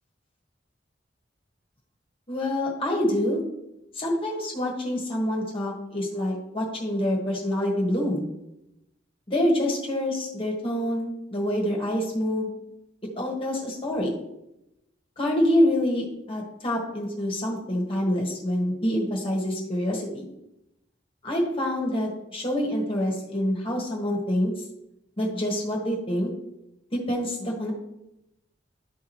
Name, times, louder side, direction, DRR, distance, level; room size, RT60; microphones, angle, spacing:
voice 1, 2.3-3.4 3.9-8.3 9.3-12.5 13.1-14.1 15.2-20.2 21.2-24.5 25.2-26.3 26.9-27.7, left 1 dB, 30° left, -2 dB, 1.4 m, -26 dB
12.5 x 4.7 x 3.1 m, 0.88 s
head